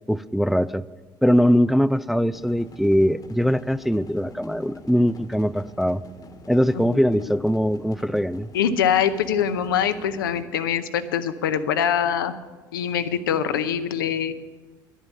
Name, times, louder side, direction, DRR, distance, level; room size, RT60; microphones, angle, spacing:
voice 1, 0.1-0.8 1.2-6.0 6.5-8.5, equal, ahead, 16 dB, 0.3 m, -21 dB
sound 1, 2.3-10.4, equal, 35° left, 1.3 m, -45 dB
voice 2, 6.8-7.3 8.5-12.3 12.7-14.3, left 8 dB, 80° left, 11 dB, 0.7 m, -24 dB
11.0 x 7.4 x 9.5 m, 1.3 s
figure-of-eight pair, 55°, 11 cm